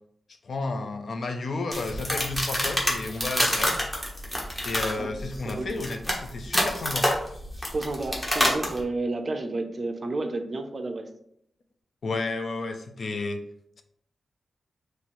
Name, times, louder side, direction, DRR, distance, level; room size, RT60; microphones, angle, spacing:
voice 1, 0.4-3.8 4.6-7.1 12.0-13.4, left 3 dB, 50° left, 5 dB, 0.4 m, -32 dB
sound 1, 1.7-8.8, equal, 10° left, 0.9 m, -27 dB
voice 2, 7.7-11.1, right 2 dB, 35° right, 6 dB, 0.5 m, -31 dB
3.1 x 3.0 x 4.2 m, 0.69 s
wide cardioid pair, 175°, 0 cm